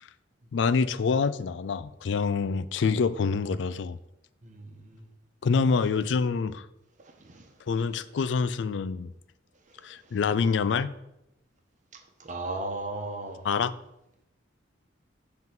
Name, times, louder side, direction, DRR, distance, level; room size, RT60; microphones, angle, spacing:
voice 1, 0.5-4.0 5.4-6.7 7.7-9.1 9.8-10.9 13.4-13.7, left 5 dB, 65° left, 16 dB, 0.4 m, -26 dB
voice 2, 4.4-5.0 7.2-7.4 12.2-13.4, right 2 dB, 40° right, 3 dB, 1.0 m, -35 dB
7.5 x 3.8 x 5.9 m, 0.87 s
head